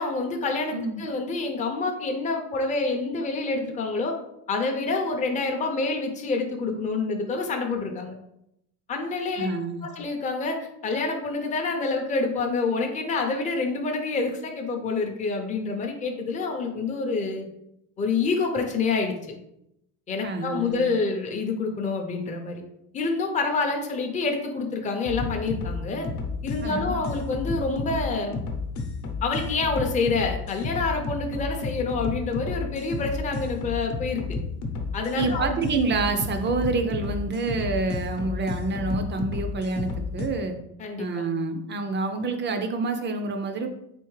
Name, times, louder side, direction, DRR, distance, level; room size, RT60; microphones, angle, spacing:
voice 1, 0.0-4.2 4.5-8.1 8.9-9.5 9.8-17.5 18.0-19.1 20.1-22.6 22.9-26.1 26.4-28.4 29.2-34.2 34.9-35.5 40.8-41.2, left 3 dB, 20° left, 2 dB, 0.5 m, -27 dB
voice 2, 9.4-9.9 20.2-20.8 26.6-26.9 35.2-40.6 41.0-43.7, right 3 dB, 35° right, 6 dB, 0.4 m, -27 dB
sound 1, 25.0-40.3, left 4 dB, 55° left, 0.8 m, -32 dB
3.7 x 3.4 x 3.1 m, 0.79 s
cardioid pair, 135°, 35 cm